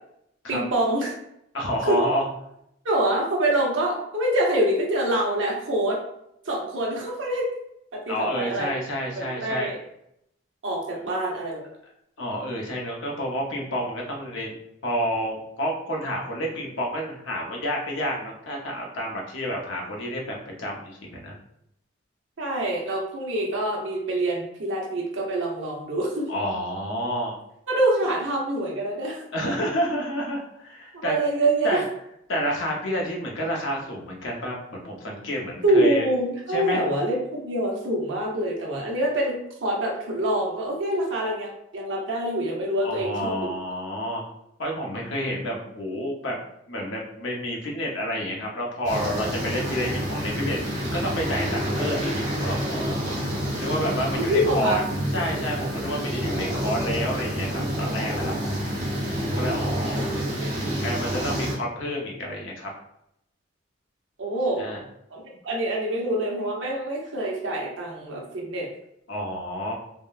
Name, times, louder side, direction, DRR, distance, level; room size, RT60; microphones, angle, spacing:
voice 1, 0.5-1.1 1.9-2.0 2.8-6.0 6.5-7.5 8.1-8.7 9.2-9.8 10.6-11.6 22.4-26.3 27.7-29.2 30.9-31.8 35.6-43.5 54.1-54.8 59.7-60.0 60.3-60.5 64.2-64.7 65.1-68.7, right 1 dB, 70° right, -2 dB, 0.8 m, -25 dB
voice 2, 1.5-2.2 8.1-9.8 10.9-11.0 12.2-14.6 14.8-21.3 26.3-27.4 29.3-31.2 31.6-31.8 32.3-36.1 36.5-36.9 42.8-44.2 44.6-46.4 46.7-50.6 50.9-53.1 53.6-54.8 55.1-58.3 59.2-60.3 60.8-62.7 64.6-64.8 69.1-69.7, equal, 75° left, -1 dB, 0.8 m, -29 dB
sound 1, 48.8-61.5, equal, 35° right, 1.2 m, -28 dB
3.6 x 2.1 x 2.4 m, 0.77 s
head